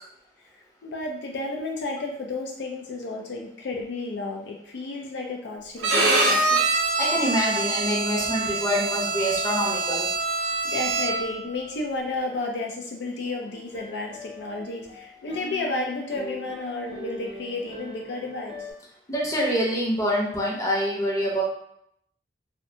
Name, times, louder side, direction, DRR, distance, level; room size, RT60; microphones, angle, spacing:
voice 1, 0.8-6.6 9.9-10.0 10.6-18.7, left 2 dB, 70° left, 1 dB, 0.4 m, -32 dB
Bowed string instrument, 5.8-11.4, right 3 dB, 75° right, 0.6 m, -25 dB
voice 2, 7.0-10.1 19.1-21.4, equal, 20° left, -4 dB, 0.7 m, -25 dB
sound 1, 13.2-18.7, left 2 dB, 35° right, 0.6 m, -41 dB
2.6 x 2.1 x 2.7 m, 0.73 s
head